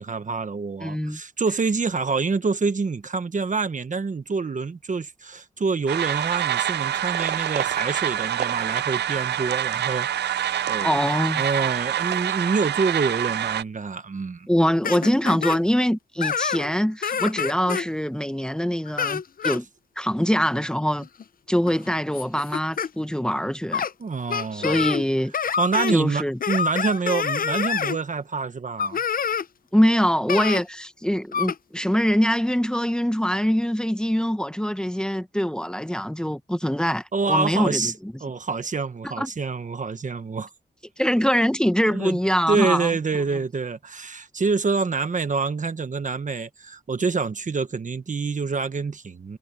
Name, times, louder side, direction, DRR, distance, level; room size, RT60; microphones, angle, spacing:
voice 1, 0.0-11.0 11.3-14.5 24.0-24.8 25.6-29.0 37.1-37.9 38.2-40.5 41.9-42.2 42.5-49.4, right 4 dB, 45° right, 1.2 m, -26 dB
voice 2, 0.8-1.2 10.8-11.4 14.5-19.7 20.0-21.1 21.5-23.9 24.5-25.3 25.9-26.4 29.7-37.9 39.2-39.3 41.0-42.9, equal, 5° left, 1.2 m, -23 dB
sound 1, 5.9-13.6, right 10 dB, 75° right, 0.4 m, -26 dB
sound 2, 14.8-15.6 16.2-16.7 17.0-17.9 18.9-19.6 21.0-21.2 21.7-22.9 23.7-23.9 24.3-25.1 25.3-26.0 26.4-28.0 28.8-29.4 30.3-30.6 31.3-31.5, left 7 dB, 55° left, 0.6 m, -26 dB
cardioid pair, 75°, 18 cm